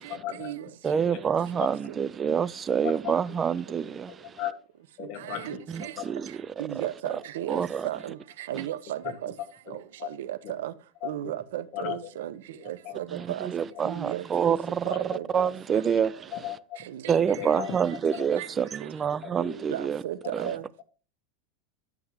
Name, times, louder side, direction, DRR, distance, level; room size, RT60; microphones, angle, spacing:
voice 1, 0.1-0.5 1.0-1.2 1.6-1.7 2.8-3.1 4.4-4.5 5.0-6.1 9.0-9.3 9.7-10.1 10.4-10.6 11.0-11.3 11.7-12.1 12.5-13.0 13.7-13.8 14.9-15.0 15.3-15.5 16.3-16.9 17.3-17.9 18.1-18.3 19.2-19.6 20.4-20.5, left 10 dB, 45° left, 1.7 m, -37 dB
voice 2, 0.8-4.4 5.7-6.7 7.5-7.9 8.5-8.6 13.1-16.3 17.1-20.0 20.3-20.5, right 7 dB, 20° right, 0.4 m, -27 dB
voice 3, 6.6-8.2 8.5-9.3 10.0-10.7 11.0-12.3 12.7-13.5 13.8-14.6 14.9-15.2 16.9-17.1 18.4-18.5 19.7-20.6, right 12 dB, 80° right, 0.9 m, -34 dB
11.0 x 6.1 x 3.6 m
supercardioid pair, 150°, 0 cm